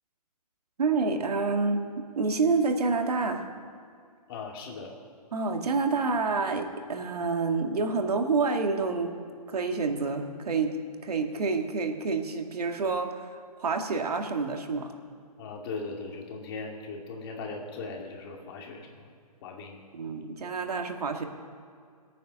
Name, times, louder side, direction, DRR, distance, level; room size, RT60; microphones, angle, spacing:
voice 1, 0.8-3.5 5.3-9.2 9.5-10.8 11.0-14.9 19.9-21.2, right 4 dB, 75° right, 4 dB, 2.1 m, -28 dB
voice 2, 4.3-4.9 15.4-19.0 19.4-19.8, left 4 dB, 40° left, 2 dB, 2.5 m, -38 dB
20.5 x 9.2 x 6.2 m, 2.3 s
hypercardioid pair, 145°, 20 cm